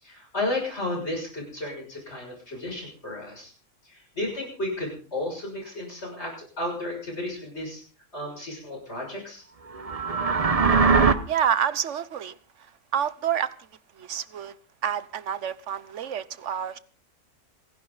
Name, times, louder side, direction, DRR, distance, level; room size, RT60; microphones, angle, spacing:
voice 1, 0.0-3.5 3.8-7.8 8.1-9.4, left 1 dB, 45° left, 6.9 m, -33 dB
sound 1, 9.7-11.1, right 5 dB, 30° right, 0.8 m, -20 dB
voice 2, 11.3-12.3 12.9-13.5 14.0-14.5 14.8-16.8, right 9 dB, 55° right, 1.2 m, -28 dB
27.5 x 11.5 x 4.0 m
omnidirectional pair, 1.6 m